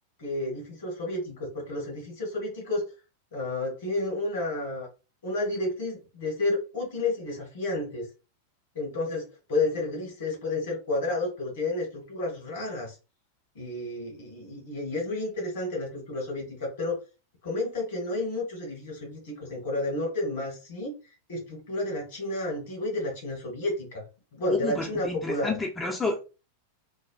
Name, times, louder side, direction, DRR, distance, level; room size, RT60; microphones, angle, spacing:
voice 1, 0.2-2.8 3.3-4.9 5.2-8.1 8.7-12.9 13.5-17.0 17.4-20.9 21.3-24.0 24.3-25.6, left 2 dB, 60° left, 0 dB, 1.5 m, -31 dB
voice 2, 24.6-26.3, left 2 dB, 15° left, 1 dB, 0.5 m, -30 dB
3.3 x 2.1 x 2.4 m, 0.31 s
figure-of-eight pair, 90°, 0 cm